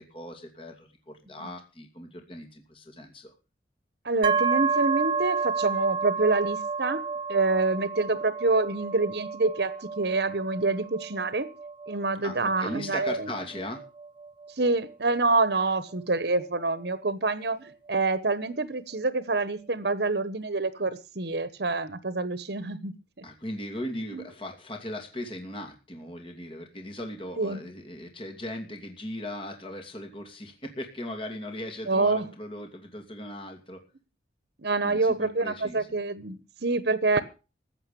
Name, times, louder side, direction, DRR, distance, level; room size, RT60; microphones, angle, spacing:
voice 1, 0.0-3.3 12.2-13.8 23.2-33.8 34.8-35.9, left 1 dB, 30° left, 4 dB, 2.6 m, -38 dB
voice 2, 4.0-7.0 7.3-11.5 11.9-13.3 14.6-22.9 24.1-24.2 27.4-27.6 31.9-32.2 34.6-37.2, right 3 dB, 65° right, 14 dB, 1.1 m, -26 dB
sound 1, 4.2-17.9, right 5 dB, 30° right, 0.8 m, -32 dB
15.0 x 9.0 x 6.9 m, 0.33 s
head